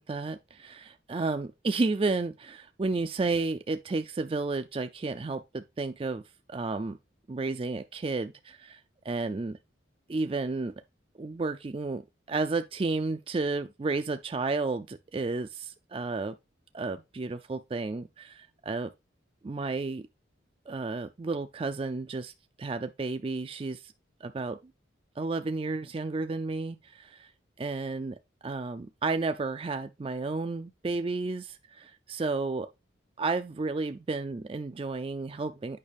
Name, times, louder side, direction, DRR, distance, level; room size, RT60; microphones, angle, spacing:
voice 1, 0.0-6.2 6.5-7.0 7.3-9.6 10.1-10.7 11.2-12.0 12.3-16.3 16.7-18.9 19.4-20.0 20.7-22.3 22.6-23.9 24.2-24.6 25.2-27.3 27.6-28.2 28.4-32.7 33.2-35.8, right 3 dB, 30° right, 0.3 m, -32 dB
8.7 x 5.4 x 3.4 m
head